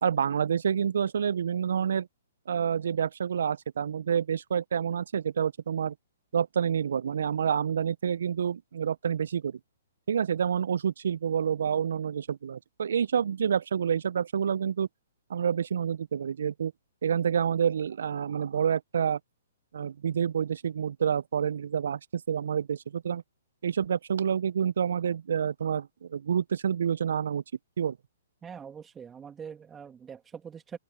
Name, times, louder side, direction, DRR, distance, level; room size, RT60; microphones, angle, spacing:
voice 1, 0.0-2.1 2.5-5.9 6.3-9.6 10.1-14.9 15.3-16.7 17.0-19.2 19.7-23.2 23.6-27.4 27.8-28.0, right 8 dB, 70° right, 0.6 m, -28 dB
voice 2, 28.4-30.8, right 7 dB, 15° right, 2.6 m, -43 dB
open air
hypercardioid pair, 125°, 0 cm